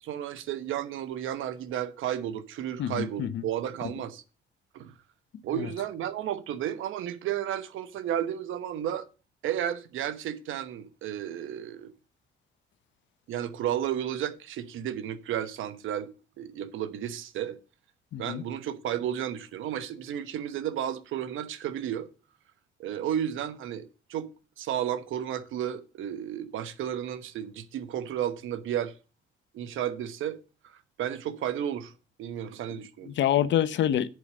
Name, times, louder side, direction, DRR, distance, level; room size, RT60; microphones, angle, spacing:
voice 1, 0.0-4.2 4.7-4.9 5.4-9.1 9.4-11.9 13.3-16.1 16.4-17.6 18.2-22.1 22.8-24.3 24.6-28.9 29.5-30.4 30.6-31.9 32.2-33.1, right 10 dB, 80° right, 1.2 m, -33 dB
voice 2, 2.8-3.4 3.8-3.9 5.6-5.7 18.1-18.4 33.0-34.1, left 10 dB, 65° left, 0.8 m, -27 dB
8.1 x 4.9 x 7.5 m
cardioid pair, 90°, 20 cm